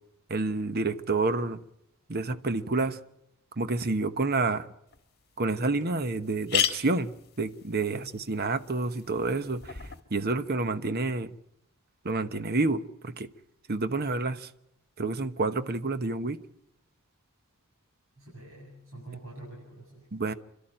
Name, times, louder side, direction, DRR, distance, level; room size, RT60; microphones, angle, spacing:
voice 1, 0.3-1.6 2.1-3.0 3.6-4.7 5.4-11.4 12.0-13.3 13.7-14.5 15.0-16.4 20.1-20.3, right 3 dB, 45° right, 1.0 m, -29 dB
sound 1, 4.9-5.0 5.5-5.6 5.8-5.9 6.2-10.0, left 8 dB, 50° left, 1.7 m, -34 dB
voice 2, 18.2-20.1, right 2 dB, 70° right, 7.9 m, -45 dB
29.5 x 12.5 x 9.0 m
head